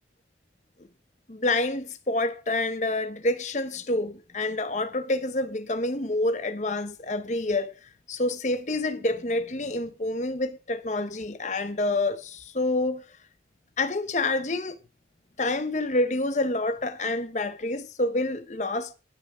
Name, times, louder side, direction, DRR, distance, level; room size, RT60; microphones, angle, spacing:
voice 1, 1.3-7.8 8.1-13.0 13.8-14.8 15.4-18.9, left 2 dB, 40° left, 0.9 m, -28 dB
13.5 x 5.8 x 4.9 m
head